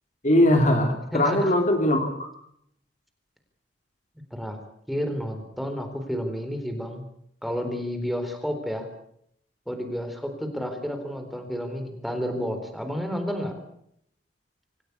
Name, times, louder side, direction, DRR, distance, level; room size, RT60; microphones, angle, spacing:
voice 1, 0.2-2.3, left 1 dB, 40° left, 5 dB, 3.5 m, -20 dB
voice 2, 1.1-1.5 4.3-4.6 4.9-7.1 7.4-8.9 9.7-13.5, equal, ahead, 5 dB, 4.1 m, -30 dB
26.5 x 16.5 x 8.5 m, 0.72 s
head